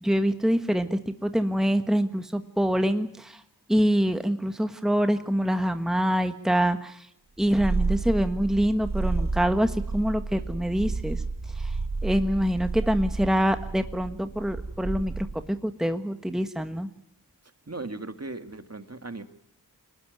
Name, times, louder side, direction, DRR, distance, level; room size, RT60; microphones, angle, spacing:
voice 1, 0.0-3.4 3.7-7.1 7.4-11.2 11.5-11.8 12.0-16.9, equal, ahead, 8 dB, 1.4 m, -25 dB
Purr, 7.4-15.5, right 3 dB, 55° right, 2.4 m, -31 dB
voice 2, 17.7-19.2, right 2 dB, 40° right, 8 dB, 2.1 m, -37 dB
23.5 x 19.5 x 9.3 m, 0.71 s
wide cardioid pair, 45°, 40 cm